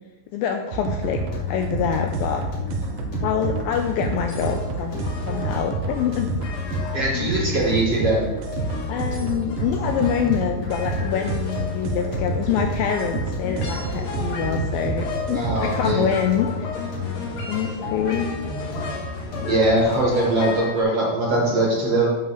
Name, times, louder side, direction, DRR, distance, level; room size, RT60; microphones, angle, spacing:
voice 1, 0.3-1.2 1.5-2.4 3.2-6.3 6.9-7.3 8.9-16.7 17.5-18.4, left 8 dB, 85° left, 4 dB, 2.1 m, -25 dB
sound 1, 0.7-15.9, right 4 dB, 75° right, 2.1 m, -29 dB
sound 2, 1.0-20.2, left 4 dB, 45° left, 3.1 m, -33 dB
sound 3, 3.7-20.8, left 3 dB, 60° left, 2.1 m, -35 dB
voice 2, 6.9-8.2 15.3-16.1 19.5-22.1, right 1 dB, 55° right, -3 dB, 1.7 m, -21 dB
7.5 x 5.5 x 6.5 m, 1.2 s
omnidirectional pair, 4.6 m